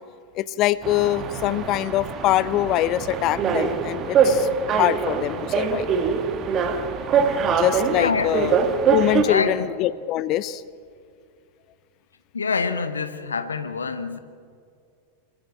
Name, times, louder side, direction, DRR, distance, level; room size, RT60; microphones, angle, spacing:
voice 1, 0.4-5.9 7.5-8.5 8.9-10.6, left 13 dB, 40° left, 18 dB, 0.6 m, -24 dB
sound 1, 0.8-9.2, right 6 dB, 30° right, 1.9 m, -23 dB
voice 2, 7.9-8.5 9.2-9.6 12.3-14.2, left 4 dB, 75° left, 10 dB, 1.2 m, -26 dB
25.5 x 15.0 x 8.6 m, 2.3 s
figure-of-eight pair, 90°, 0 cm